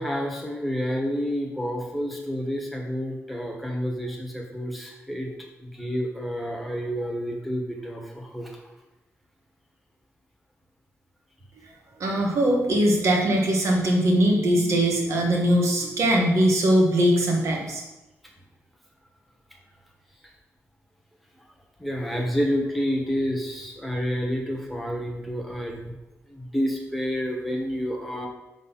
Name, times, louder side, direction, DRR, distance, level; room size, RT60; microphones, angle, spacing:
voice 1, 0.0-5.3 5.6-8.7 21.8-26.0 26.3-28.3, equal, ahead, 0 dB, 1.2 m, -29 dB
voice 2, 12.0-17.8, right 1 dB, 70° right, 0 dB, 1.4 m, -21 dB
5.3 x 4.0 x 5.7 m, 1.0 s
wide cardioid pair, 140°, 5 cm